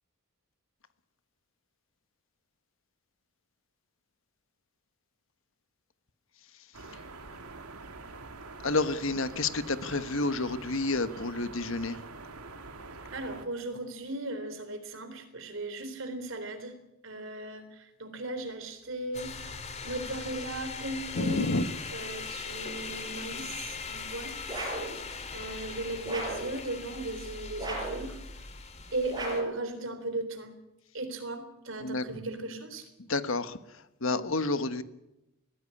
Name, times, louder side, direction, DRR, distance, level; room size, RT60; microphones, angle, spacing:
sound 1, 6.7-13.5, right 3 dB, 85° right, 2.3 m, -45 dB
voice 1, 8.6-12.0 21.1-21.6 31.8-32.0 33.1-33.6 34.0-34.8, left 3 dB, 60° left, 12 dB, 1.3 m, -29 dB
voice 2, 13.1-16.8 17.0-19.3 19.8-21.6 21.9-24.7 25.3-28.2 28.9-30.5 30.9-32.9, right 2 dB, 60° right, 9 dB, 3.7 m, -37 dB
sound 2, 19.1-29.4, left 4 dB, 30° left, 2.1 m, -40 dB
sound 3, 24.5-24.9 26.0-26.5 27.6-28.1 29.1-29.6, right 2 dB, 20° right, 5.5 m, -35 dB
20.5 x 15.5 x 9.8 m, 0.90 s
head